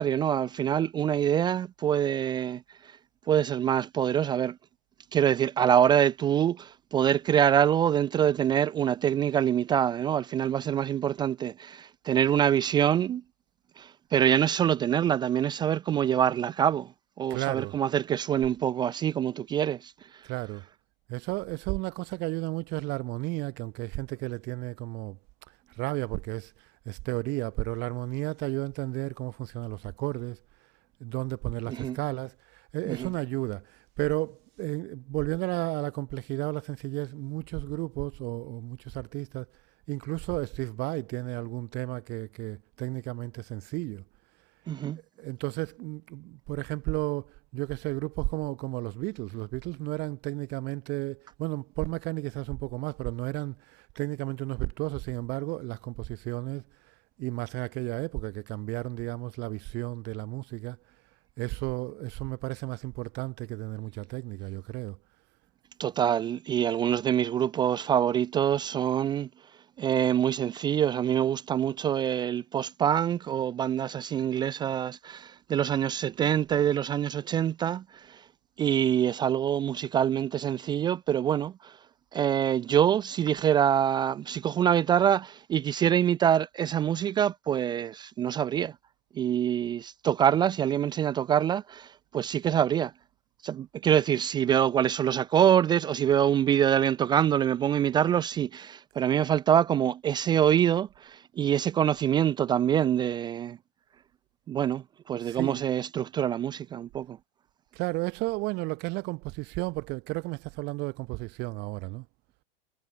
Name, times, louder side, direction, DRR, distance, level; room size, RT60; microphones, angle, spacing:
voice 1, 0.0-2.6 3.3-4.6 5.1-13.2 13.8-16.9 17.2-19.9 31.7-32.0 32.9-33.1 44.7-45.0 65.8-69.3 69.8-78.2 78.6-81.7 82.1-88.7 89.2-91.9 92.1-92.9 93.4-103.6 104.5-107.2, right 9 dB, 15° right, 0.4 m, -25 dB
voice 2, 17.3-17.8 20.2-20.6 21.1-25.2 25.8-26.5 26.9-30.4 31.0-39.5 39.9-44.0 45.2-56.6 57.2-60.8 61.4-65.0 105.2-105.7 107.7-112.0, right 24 dB, 35° right, 1.0 m, -33 dB
figure-of-eight pair, 90°, 29 cm